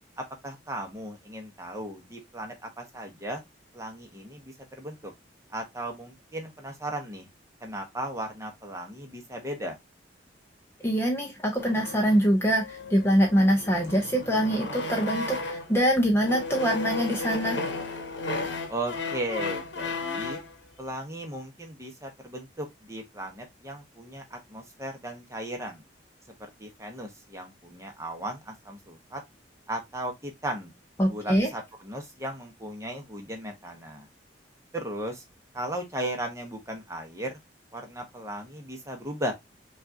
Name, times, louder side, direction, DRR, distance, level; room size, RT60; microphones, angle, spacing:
voice 1, 0.2-3.4 3.7-5.1 5.5-7.3 7.6-9.8 18.7-20.4 20.8-25.8 26.4-29.2 29.7-30.7 31.1-34.1 34.7-35.2 35.5-37.4 37.7-39.3, right 1 dB, 15° right, 0.9 m, -36 dB
voice 2, 10.8-17.6 31.0-31.5, equal, 15° left, 0.6 m, -24 dB
sound 1, 11.6-15.8 16.2-20.5, left 3 dB, 75° left, 0.9 m, -34 dB
5.4 x 2.4 x 2.6 m
head